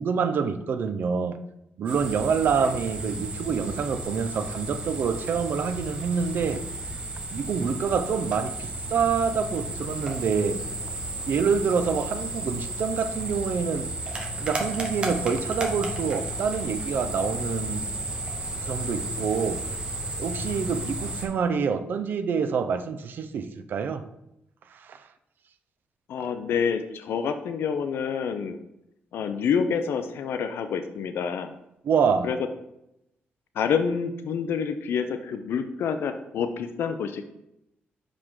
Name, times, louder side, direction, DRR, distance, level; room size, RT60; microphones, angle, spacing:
voice 1, 0.0-1.4 1.8-6.6 7.3-10.6 11.3-13.9 14.4-17.9 18.6-19.6 20.2-24.0 24.7-25.0 26.2-26.3 31.8-32.3, right 6 dB, 55° right, 0.5 m, -26 dB
sound 1, 1.9-21.3, right 2 dB, 25° right, 1.0 m, -33 dB
voice 2, 26.1-28.6 29.1-31.5 32.2-32.4 33.6-37.2, left 6 dB, 75° left, 0.5 m, -27 dB
6.2 x 5.0 x 3.6 m
wide cardioid pair, 175°, 4 cm